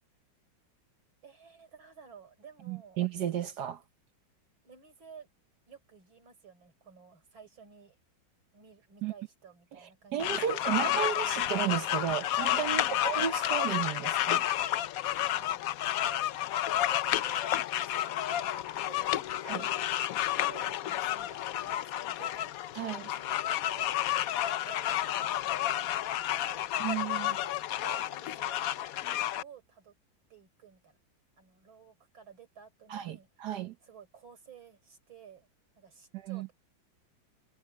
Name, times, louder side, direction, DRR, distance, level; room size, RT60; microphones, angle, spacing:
voice 1, 1.2-3.0 4.6-5.3 5.7-8.0 8.5-10.7 12.7-13.0 15.1-16.5 16.8-20.0 20.3-22.5 23.0-26.0 26.3-26.7 27.3-28.8 29.3-29.9 30.3-31.0 31.4-33.3 33.8-35.5 35.7-36.5, right 7 dB, 80° right, 5.2 m, -54 dB
voice 2, 2.7-3.8 9.0-9.1 9.7-9.8 10.1-14.4 19.4-19.6 22.7-23.1 26.8-27.4 32.9-33.7 36.1-36.5, right 10 dB, 65° right, 1.3 m, -33 dB
sound 1, 10.2-29.4, left 12 dB, 80° left, 0.7 m, -31 dB
omnidirectional pair, 2.1 m